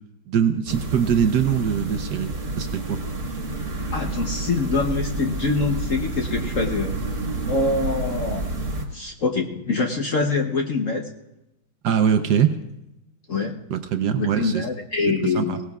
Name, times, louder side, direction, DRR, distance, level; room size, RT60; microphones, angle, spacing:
voice 1, 0.3-3.0 11.8-12.6 13.7-14.6 15.2-15.6, right 8 dB, 70° right, 8 dB, 1.0 m, -22 dB
sound 1, 0.7-8.9, right 2 dB, 40° right, 1.8 m, -29 dB
voice 2, 3.9-7.0 7.5-8.5 8.9-11.1 13.3-13.5 14.2-15.6, left 3 dB, 55° left, 2 dB, 0.9 m, -24 dB
22.5 x 18.0 x 2.4 m, 0.91 s
omnidirectional pair, 2.4 m